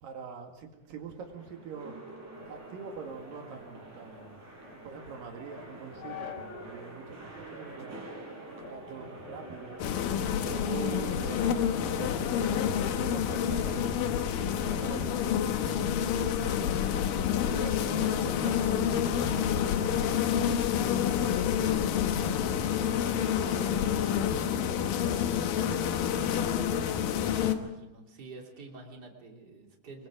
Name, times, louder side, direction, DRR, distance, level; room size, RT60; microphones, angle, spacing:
voice 1, 0.0-2.0 2.5-4.4 4.7-8.0 8.5-9.8 10.4-15.8 17.5-20.7 22.2-25.3 25.6-26.0, right 5 dB, 85° right, 3 dB, 3.7 m, -44 dB
sound 1, 0.8-15.1, right 2 dB, 65° right, 5.7 m, -47 dB
sound 2, 2.4-6.8 7.2-7.3 7.9-8.3 8.6-10.7 11.1-13.5, left 6 dB, 45° left, 2.5 m, -49 dB
sound 3, 9.8-27.6, left 9 dB, 85° left, 2.9 m, -28 dB
voice 2, 27.4-30.1, right 3 dB, 30° right, 0 dB, 3.5 m, -48 dB
25.0 x 23.0 x 5.1 m, 0.99 s
omnidirectional pair, 3.9 m